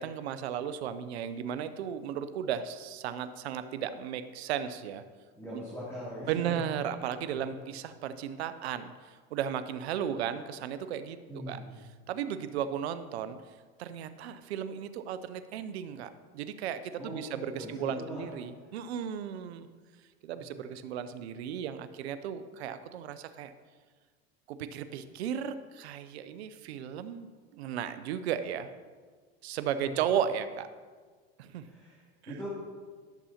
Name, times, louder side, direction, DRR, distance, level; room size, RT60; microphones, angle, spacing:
voice 1, 0.0-5.0 5.5-5.6 6.3-11.6 12.1-13.4 13.8-19.7 20.2-23.5 24.5-28.7 29.4-30.7 31.4-31.7 32.2-32.3, right 9 dB, 90° right, 11 dB, 0.5 m, -35 dB
voice 2, 5.3-6.6 7.3-7.5 11.3-11.7 17.0-18.3 20.4-20.5 29.8-29.9 31.6-32.6, equal, 10° left, -9 dB, 2.7 m, -41 dB
11.5 x 6.9 x 2.8 m, 1.5 s
hypercardioid pair, 100°, 32 cm